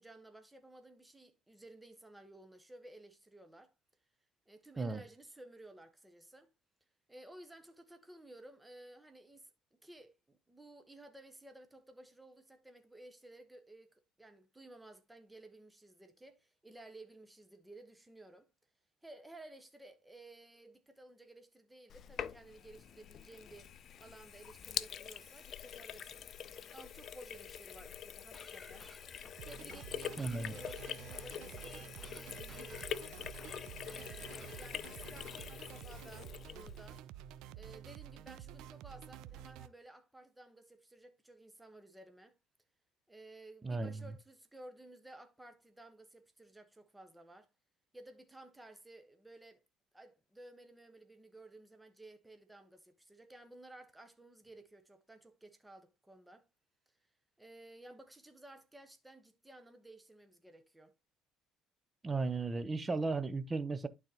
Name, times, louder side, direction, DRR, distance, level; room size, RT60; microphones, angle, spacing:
voice 1, 0.0-3.7 4.5-6.5 7.1-18.5 19.0-23.7 24.0-26.3 26.7-28.9 29.4-33.1 33.8-37.0 37.5-42.4 43.1-47.5 47.9-49.6 49.9-56.5 57.4-60.9, right 1 dB, 10° right, 1.2 m, -55 dB
Sink (filling or washing), 21.9-37.0, left 9 dB, 50° left, 0.4 m, -45 dB
sound 1, 28.3-35.7, left 2 dB, 10° left, 1.0 m, -58 dB
sound 2, 29.4-39.7, right 10 dB, 70° right, 0.5 m, -50 dB
voice 2, 30.2-30.5 43.6-44.0 62.0-63.9, right 3 dB, 25° right, 0.8 m, -35 dB
11.5 x 4.0 x 2.9 m
hypercardioid pair, 70°, 0 cm